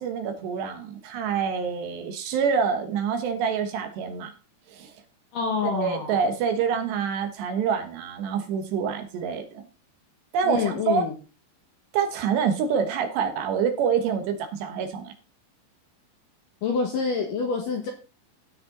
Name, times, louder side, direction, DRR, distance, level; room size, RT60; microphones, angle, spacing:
voice 1, 0.0-4.3 4.7-4.9 5.6-9.6 10.3-11.1 11.9-15.1, right 6 dB, 70° right, 6 dB, 3.2 m, -26 dB
voice 2, 5.3-6.2 10.4-11.1 16.6-17.9, left 5 dB, 60° left, 2 dB, 2.4 m, -27 dB
16.5 x 5.5 x 3.8 m, 0.32 s
omnidirectional pair, 5.4 m